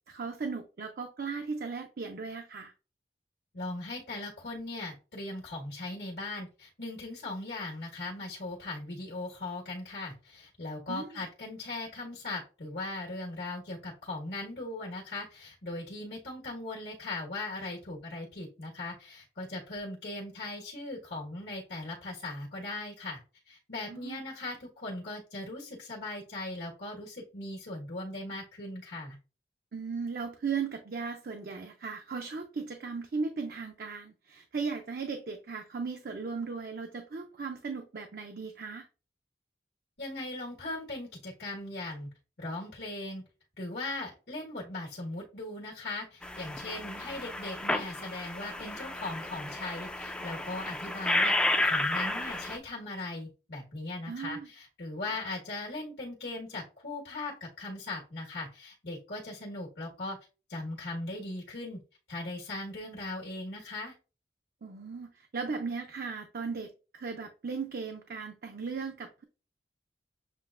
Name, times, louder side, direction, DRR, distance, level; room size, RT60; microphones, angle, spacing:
voice 1, 0.1-2.7 10.9-11.2 23.9-24.2 29.7-38.9 54.1-54.5 55.1-55.2 64.6-69.2, right 5 dB, 55° right, 0.5 m, -37 dB
voice 2, 3.5-23.2 23.5-29.2 40.0-42.1 42.4-43.2 43.6-60.2 60.5-61.8 62.1-63.9, left 2 dB, 80° left, 1.4 m, -39 dB
sound 1, 46.2-52.6, left 1 dB, 5° left, 0.3 m, -32 dB
7.4 x 2.5 x 2.4 m
head